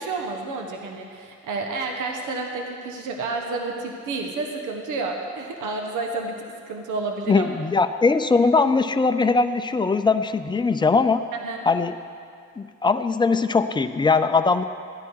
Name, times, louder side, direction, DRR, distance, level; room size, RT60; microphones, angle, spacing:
voice 1, 0.0-6.4 6.7-7.5 11.3-11.7, right 3 dB, 80° right, 3 dB, 1.2 m, -30 dB
voice 2, 7.3-11.2 11.7-11.9 12.6-14.6, left 4 dB, 15° left, 9 dB, 0.5 m, -20 dB
14.0 x 10.5 x 4.7 m, 2.3 s
cardioid pair, 90°, 30 cm